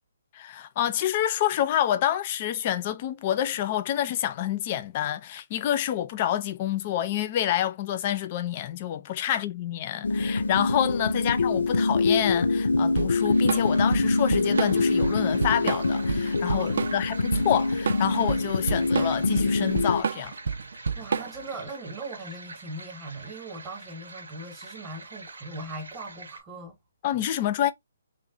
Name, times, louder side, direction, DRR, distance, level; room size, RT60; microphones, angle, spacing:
voice 1, 0.3-20.3 27.0-27.7, left 11 dB, 30° left, 0.4 m, -28 dB
sound 1, 10.0-20.0, left 3 dB, 90° left, 0.4 m, -25 dB
Drum kit / Drum, 13.0-21.6, right 5 dB, 65° right, 0.5 m, -30 dB
sound 2, 13.1-26.4, right 3 dB, 90° right, 0.9 m, -45 dB
voice 2, 16.5-17.2 20.9-26.8, right 2 dB, 20° right, 0.8 m, -40 dB
3.0 x 2.1 x 3.7 m
hypercardioid pair, 160°, 0 cm